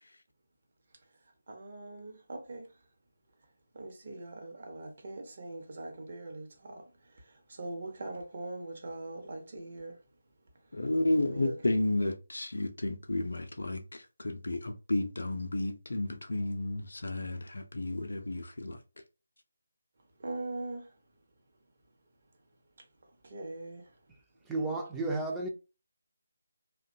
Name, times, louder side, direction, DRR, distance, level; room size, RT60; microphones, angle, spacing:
voice 1, 1.5-2.7 3.7-10.0 11.2-11.6 20.2-21.0 23.2-24.0, right 2 dB, 45° right, 0.7 m, -42 dB
voice 2, 10.7-18.8, left 2 dB, 65° left, 0.4 m, -32 dB
voice 3, 24.5-25.5, right 2 dB, 5° right, 0.4 m, -32 dB
2.6 x 2.1 x 2.5 m
figure-of-eight pair, 155°, 0 cm